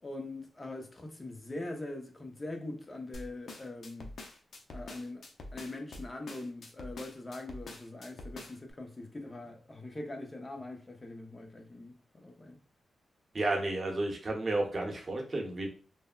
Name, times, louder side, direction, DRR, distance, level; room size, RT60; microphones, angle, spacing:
voice 1, 0.0-4.1 4.7-5.2 5.5-12.6, left 2 dB, 30° left, 0.7 m, -42 dB
sound 1, 3.1-8.7, left 2 dB, 70° left, 0.5 m, -46 dB
voice 2, 13.3-15.7, right 2 dB, 45° right, 0.8 m, -32 dB
3.4 x 2.1 x 2.3 m
cardioid pair, 65°, 0 cm